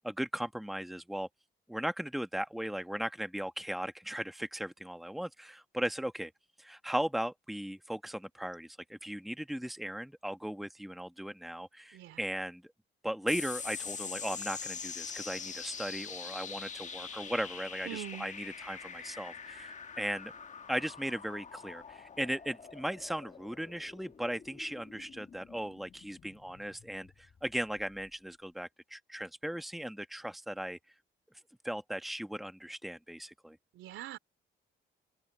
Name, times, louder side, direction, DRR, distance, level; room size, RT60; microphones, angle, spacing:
voice 1, 0.0-1.3 1.7-6.3 6.6-12.6 13.0-20.3 20.7-30.8 31.6-33.6, right 1 dB, ahead, 1.4 m, -37 dB
sound 1, 13.3-28.1, left 6 dB, 35° left, 1.4 m, -44 dB
voice 2, 17.8-18.3 33.7-34.2, right 14 dB, 85° right, 3.5 m, -43 dB
open air
cardioid pair, 90°, 20 cm